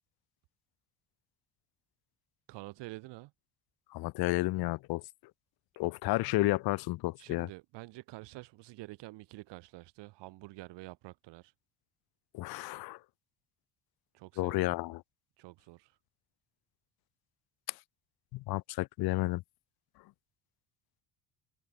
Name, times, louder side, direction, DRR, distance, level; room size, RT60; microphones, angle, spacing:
voice 1, 2.5-3.3 7.2-11.5 14.1-14.8 15.4-16.0, right 20 dB, 80° right, 7.1 m, -48 dB
voice 2, 3.9-5.0 5.8-7.5 12.3-13.0 14.4-15.0 18.3-19.4, left 20 dB, 60° left, 0.5 m, -31 dB
supercardioid pair, 75°, 41 cm